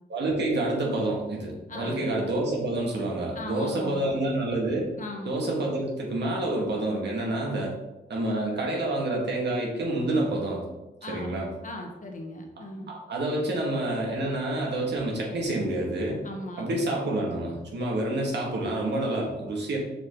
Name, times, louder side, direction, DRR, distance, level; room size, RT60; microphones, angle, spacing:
voice 1, 0.1-4.9 5.3-7.7 8.1-10.6 11.1-11.5 12.9-16.2 16.6-19.8, right 1 dB, 80° right, -2 dB, 1.8 m, -28 dB
voice 2, 1.7-2.1 3.3-4.2 5.0-5.3 11.0-11.4 11.6-12.9 16.2-16.7, left 1 dB, 50° left, 3 dB, 1.2 m, -38 dB
6.0 x 5.6 x 3.8 m, 1.0 s
wide cardioid pair, 100°, 18 cm